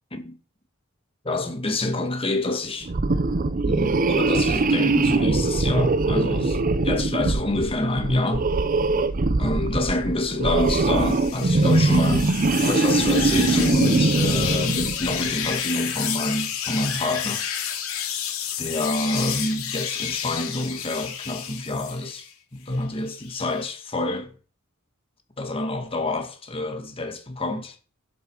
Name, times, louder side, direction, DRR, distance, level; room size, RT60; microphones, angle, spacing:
voice 1, 1.2-2.9 3.7-8.5 9.4-12.3 12.6-17.7 18.6-24.3 25.4-27.8, left 2 dB, 25° left, 2.2 m, -27 dB
sound 1, 2.9-15.3, right 3 dB, 40° right, 0.6 m, -22 dB
sound 2, 10.7-22.3 22.7-23.7, left 8 dB, 70° left, 2.9 m, -31 dB
12.0 x 8.3 x 5.0 m
head